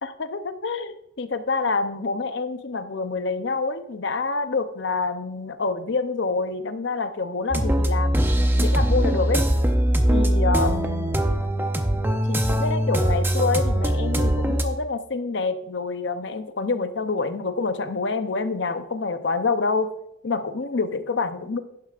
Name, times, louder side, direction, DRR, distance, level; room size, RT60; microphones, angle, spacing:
voice 1, 0.0-9.5 10.1-11.1 12.3-19.9 20.2-21.6, left 4 dB, 55° left, 10 dB, 0.6 m, -27 dB
sound 1, 7.5-14.7, equal, 10° right, 0.5 m, -21 dB
11.5 x 10.0 x 2.5 m, 0.80 s
head